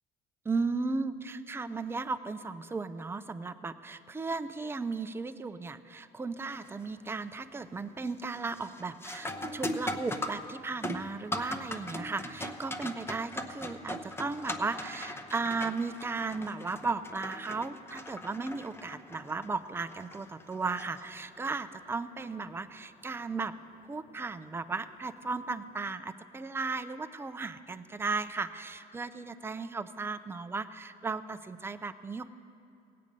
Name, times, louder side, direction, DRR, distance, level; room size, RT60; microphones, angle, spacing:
voice 1, 0.4-23.5 23.9-32.3, right 4 dB, 10° right, 10 dB, 0.4 m, -35 dB
sound 1, 6.5-6.9 7.3-7.7 8.0-21.6 24.1-24.2 25.0-25.2, left 1 dB, 10° left, 0.8 m, -40 dB
16.5 x 8.5 x 5.2 m, 2.5 s
cardioid pair, 110°, 20 cm